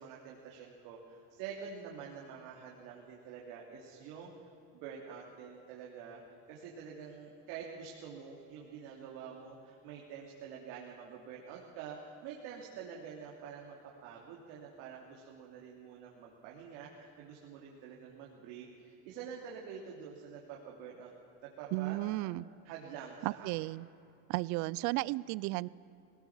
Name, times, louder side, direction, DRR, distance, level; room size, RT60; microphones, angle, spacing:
voice 1, 0.0-6.2 6.5-21.1 21.4-22.0 22.6-23.7, right 7 dB, 70° right, -2 dB, 3.1 m, -47 dB
voice 2, 21.7-22.4 23.2-23.9 24.3-25.7, right 20 dB, 55° right, 21 dB, 0.5 m, -34 dB
21.5 x 18.0 x 7.2 m, 2.7 s
cardioid pair, 150°, 35 cm